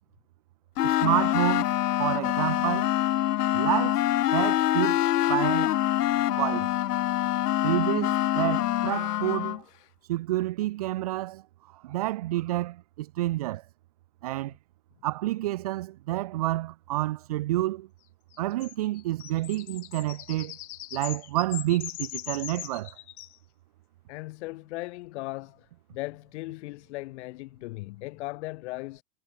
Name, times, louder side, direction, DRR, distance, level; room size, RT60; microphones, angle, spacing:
sound 1, 0.8-9.6, left 13 dB, 85° left, 3.1 m, -25 dB
voice 1, 0.8-2.9 3.5-4.0 4.3-5.7 6.3-6.7 7.6-9.6 10.0-11.4 11.7-13.6 14.2-14.5 15.0-17.9 18.4-20.6 20.9-22.9, right 16 dB, 25° right, 0.4 m, -29 dB
sound 2, 18.3-23.4, left 14 dB, 65° left, 6.8 m, -40 dB
voice 2, 24.1-29.0, left 21 dB, 45° left, 3.2 m, -38 dB
supercardioid pair, 175°, 46 cm